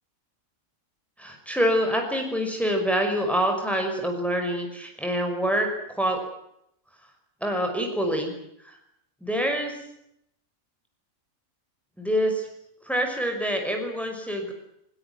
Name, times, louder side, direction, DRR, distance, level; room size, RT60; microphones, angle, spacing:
voice 1, 1.2-6.2 7.4-8.3 8.6-8.8 9.2-9.8 12.0-12.5 12.8-14.5, equal, ahead, 3 dB, 5.6 m, -26 dB
22.0 x 21.5 x 9.5 m, 0.77 s
omnidirectional pair, 1.5 m